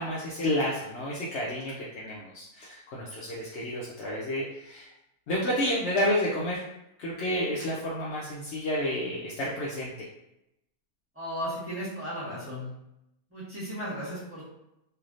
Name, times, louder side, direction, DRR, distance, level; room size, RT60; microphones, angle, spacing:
voice 1, 0.0-4.9 5.3-6.6 7.0-9.9, left 1 dB, 65° left, -5 dB, 0.7 m, -30 dB
voice 2, 11.1-12.7 13.3-14.5, equal, 10° right, -10 dB, 1.2 m, -35 dB
3.2 x 2.7 x 2.5 m, 0.86 s
omnidirectional pair, 1.6 m